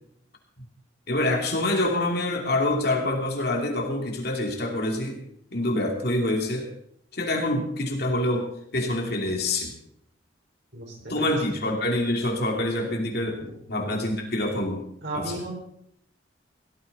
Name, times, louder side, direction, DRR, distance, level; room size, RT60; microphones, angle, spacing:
voice 1, 1.1-5.2 5.5-6.7 7.1-9.7 11.1-13.4 13.7-14.8 15.1-15.2, left 1 dB, 50° left, 2 dB, 2.6 m, -26 dB
voice 2, 10.7-11.3 15.0-15.5, right 1 dB, 60° right, -1 dB, 5.2 m, -34 dB
16.5 x 13.5 x 4.1 m, 0.69 s
head